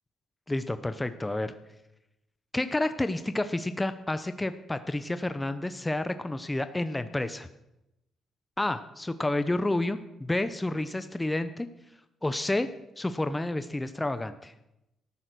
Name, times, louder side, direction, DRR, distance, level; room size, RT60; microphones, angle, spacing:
voice 1, 0.5-1.5 2.5-7.5 8.6-11.7 12.2-12.7 13.0-14.5, left 2 dB, 15° left, 11 dB, 0.8 m, -30 dB
14.0 x 10.5 x 6.3 m, 0.89 s
cardioid pair, 90°, 0 cm